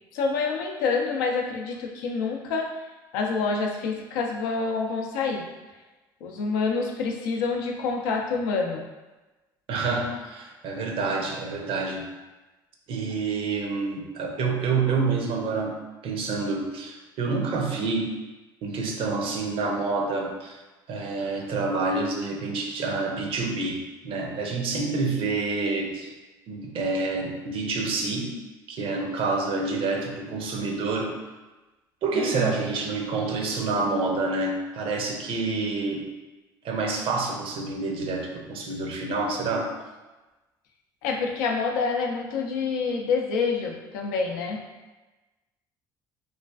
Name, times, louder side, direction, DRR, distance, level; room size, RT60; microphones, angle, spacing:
voice 1, 0.1-2.7 3.1-5.5 6.2-8.8 32.1-32.5 41.0-44.6, left 4 dB, 85° left, 1 dB, 0.4 m, -27 dB
voice 2, 9.7-12.1 12.9-15.8 16.0-18.1 18.6-20.6 20.9-26.1 26.5-28.3 28.7-31.2 32.0-36.0 36.6-39.7, right 3 dB, 60° right, 2 dB, 0.5 m, -28 dB
3.1 x 2.4 x 2.3 m, 1.1 s
supercardioid pair, 70°, 10 cm